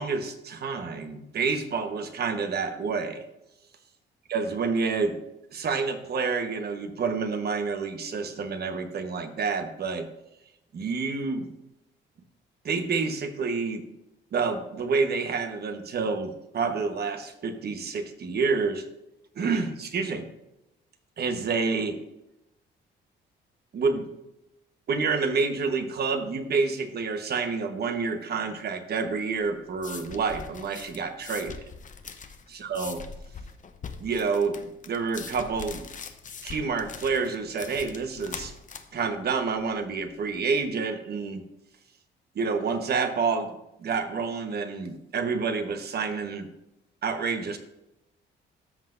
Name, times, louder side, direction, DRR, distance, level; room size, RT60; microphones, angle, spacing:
voice 1, 0.0-3.2 4.3-5.2 5.5-10.1 10.7-11.5 12.6-13.9 14.3-18.8 19.3-20.3 21.2-22.0 23.7-24.0 24.9-31.6 32.5-33.0 34.0-35.8 36.4-38.5 38.9-41.4 42.3-43.5 43.8-46.5 47.0-47.6, right 4 dB, 55° right, 7 dB, 1.1 m, -28 dB
sound 1, 29.3-40.6, left 5 dB, 40° left, 0.8 m, -43 dB
13.0 x 5.8 x 2.6 m, 0.89 s
cardioid pair, 90°, 20 cm